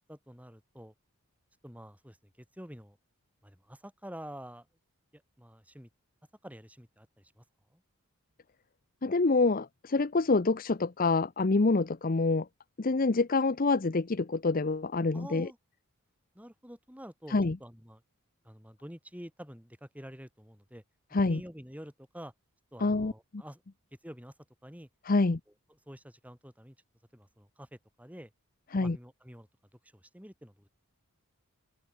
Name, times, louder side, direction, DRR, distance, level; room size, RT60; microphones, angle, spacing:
voice 1, 0.1-0.9 1.6-3.0 3.4-4.7 5.1-5.9 6.4-7.4 7.7-7.8 15.1-15.6 16.4-18.0 18.4-20.8 21.3-22.3 22.7-23.6 24.0-24.3 24.6-24.9 25.9-26.8 27.1-28.3 28.7-29.5 29.9-30.7, equal, 5° right, 7.4 m, -48 dB
voice 2, 9.0-12.5 12.8-15.5 17.3-17.6 21.1-21.4 22.8-23.4 25.0-25.4 28.7-29.0, left 3 dB, 40° left, 0.6 m, -27 dB
head